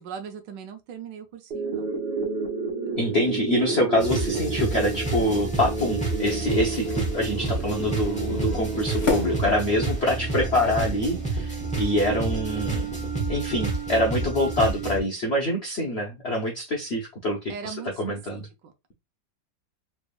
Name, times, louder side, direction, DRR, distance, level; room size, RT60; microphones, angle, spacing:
voice 1, 0.0-1.9 17.5-18.7, right 6 dB, 75° right, 1.3 m, -39 dB
sound 1, 1.5-10.5, right 4 dB, 40° right, 1.0 m, -31 dB
voice 2, 3.0-12.9 13.3-18.5, left 1 dB, 65° left, 0.6 m, -25 dB
sound 2, 4.0-15.0, right 3 dB, 10° left, 0.4 m, -29 dB
sound 3, 4.3-10.3, left 5 dB, 35° left, 1.2 m, -36 dB
3.4 x 3.3 x 2.3 m
omnidirectional pair, 2.0 m